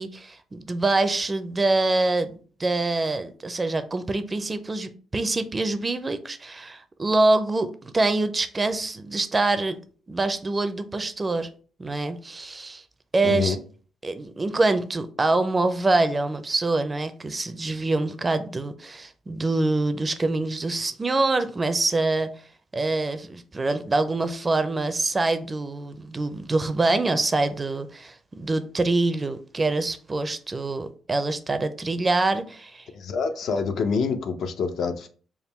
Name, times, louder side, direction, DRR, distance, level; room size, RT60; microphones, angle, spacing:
voice 1, 0.0-2.3 2.6-9.8 10.1-11.5 11.8-12.8 13.1-13.6 14.0-22.3 22.7-32.9, right 2 dB, 25° right, 10 dB, 0.4 m, -25 dB
voice 2, 13.2-13.6 32.9-35.1, left 5 dB, 65° left, 7 dB, 0.5 m, -26 dB
3.6 x 2.2 x 4.2 m, 0.42 s
cardioid pair, 90°, 0 cm